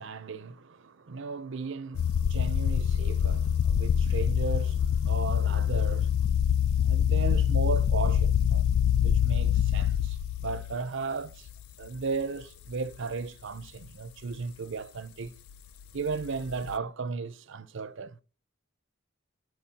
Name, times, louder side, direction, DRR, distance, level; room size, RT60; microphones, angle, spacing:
voice 1, 0.0-6.3 6.8-8.7 9.0-11.5 11.8-15.4 15.9-18.2, right 4 dB, 65° right, 0.6 m, -35 dB
sound 1, 1.9-10.8 11.5-11.9 12.4-12.5 16.1-16.8, left 9 dB, 85° left, 0.3 m, -25 dB
11.0 x 4.6 x 2.8 m
head